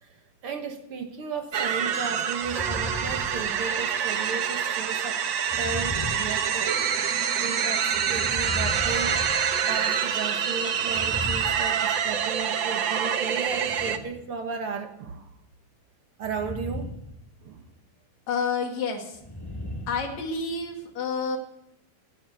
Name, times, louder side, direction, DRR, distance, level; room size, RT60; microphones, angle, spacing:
voice 1, 0.0-5.2 5.6-6.7 7.4-9.2 9.7-15.3 16.2-16.9 17.4-17.6, right 5 dB, 55° right, 6 dB, 1.7 m, -35 dB
sound 1, 1.5-14.0, right 8 dB, 80° right, 1.0 m, -26 dB
sound 2, 2.4-4.0 5.5-7.0 7.9-10.0 10.8-12.3 13.5-14.2 16.2-17.1 17.4-17.7 19.1-20.7, left 1 dB, 5° left, 3.0 m, -37 dB
voice 2, 18.3-19.1 19.9-21.4, left 5 dB, 60° left, 2 dB, 3.6 m, -29 dB
17.5 x 9.3 x 8.0 m, 0.81 s
omnidirectional pair, 3.7 m